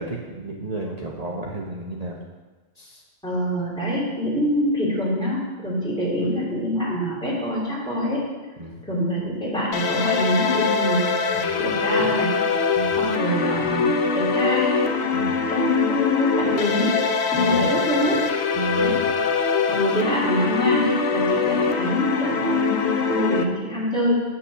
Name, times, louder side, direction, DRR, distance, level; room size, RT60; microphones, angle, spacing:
voice 1, 0.0-2.2 2.8-3.0 8.6-8.8 11.3-11.6 12.8-13.0 15.1-15.4 17.3-17.6 18.5-19.1, right 1 dB, 35° right, -3 dB, 0.9 m, -32 dB
voice 2, 3.2-8.2 8.8-11.1 11.6-12.3 13.0-13.9 14.1-14.8 15.5-17.0 17.3-18.3 18.8-19.0 19.6-24.2, left 1 dB, 5° left, -7 dB, 3.1 m, -25 dB
sound 1, 9.7-23.4, left 5 dB, 65° left, 1.0 m, -23 dB
8.1 x 5.7 x 7.0 m, 1.3 s
omnidirectional pair, 1.2 m